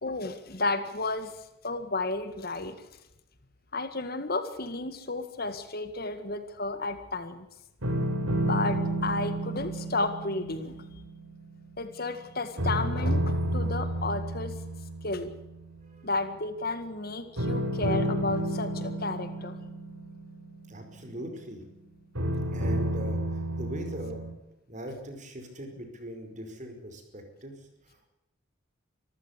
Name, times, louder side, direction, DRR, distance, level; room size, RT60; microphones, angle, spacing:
voice 1, 0.0-2.9 3.7-7.5 8.5-10.7 11.8-14.5 15.0-15.3 16.0-19.5, left 3 dB, 45° left, 10 dB, 1.9 m, -32 dB
sound 1, 7.8-12.2 12.6-15.9 17.4-21.4 22.1-24.3, right 1 dB, 90° right, 5.3 m, -31 dB
voice 2, 15.8-16.1 20.7-21.6 22.5-24.3 24.7-28.1, equal, 35° right, 6 dB, 5.1 m, -41 dB
25.0 x 15.0 x 8.3 m, 0.93 s
head